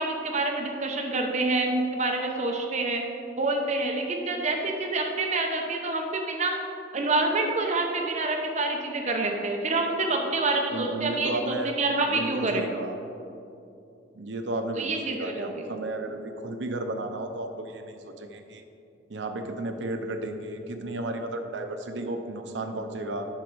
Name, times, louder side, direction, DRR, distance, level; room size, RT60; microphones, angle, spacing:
voice 1, 0.0-3.0 3.4-6.5 6.9-12.6 14.7-15.7, right 2 dB, 40° right, 2 dB, 0.8 m, -27 dB
voice 2, 10.7-11.7 12.1-13.0 14.1-18.6 19.1-23.3, right 2 dB, 70° right, 6 dB, 0.7 m, -33 dB
9.0 x 6.1 x 4.7 m, 2.6 s
head